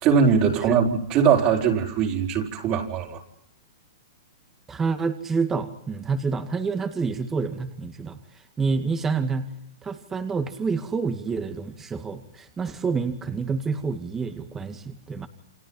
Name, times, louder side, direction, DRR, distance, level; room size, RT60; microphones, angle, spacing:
voice 1, 0.0-3.2, right 6 dB, 40° right, 1 dB, 4.6 m, -21 dB
voice 2, 4.7-8.2 8.6-9.5 9.8-15.3, right 4 dB, 15° right, 7 dB, 2.1 m, -28 dB
29.5 x 26.0 x 5.6 m, 0.73 s
hypercardioid pair, 125°, 2 cm